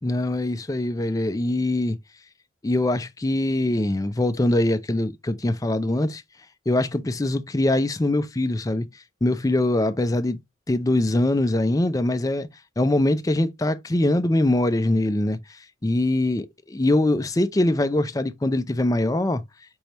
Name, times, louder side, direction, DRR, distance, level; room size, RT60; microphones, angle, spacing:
voice 1, 0.0-2.0 2.6-6.2 6.7-8.9 9.2-10.4 10.7-12.5 12.8-15.4 15.8-19.4, left 1 dB, 20° left, 0.4 m, -23 dB
5.3 x 3.3 x 2.9 m
head